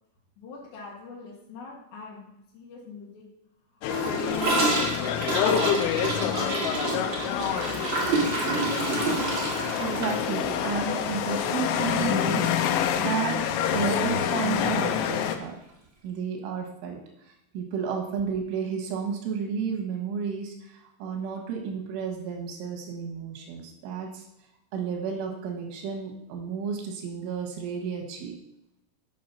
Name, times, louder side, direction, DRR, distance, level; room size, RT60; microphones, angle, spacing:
voice 1, 0.4-3.3 3.7-3.9 4.2-6.4 7.0-9.2, left 4 dB, 60° left, -5 dB, 3.1 m, -45 dB
sound 1, 3.8-15.4, left 9 dB, 85° left, 3.1 m, -27 dB
Gurgling / Toilet flush, 3.9-12.2 12.4-12.6 12.8-13.3 13.6-13.7 14.0-14.1 15.0-15.1, right 2 dB, 60° right, 1.1 m, -29 dB
voice 2, 9.8-13.4 13.7-15.6 16.0-24.2 24.7-28.3, right 6 dB, 90° right, 2 dB, 4.0 m, -32 dB
8.8 x 6.2 x 5.7 m, 0.82 s
omnidirectional pair, 5.5 m